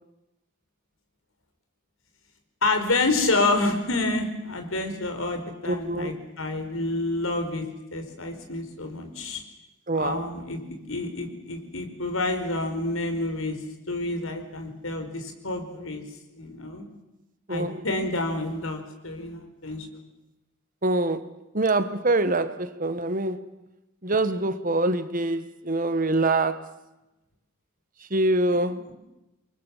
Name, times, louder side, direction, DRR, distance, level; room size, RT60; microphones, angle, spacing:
voice 1, 2.6-7.6 7.9-9.4 9.9-13.6 13.9-16.0 16.3-16.9 17.5-19.9 28.9-29.0, left 2 dB, 85° left, 5.0 m, -28 dB
voice 2, 5.7-6.1 9.9-10.2 17.5-17.8 20.8-21.3 21.5-23.4 24.0-26.7 28.1-28.8, right 2 dB, 40° right, 1.5 m, -25 dB
28.5 x 23.5 x 7.4 m
head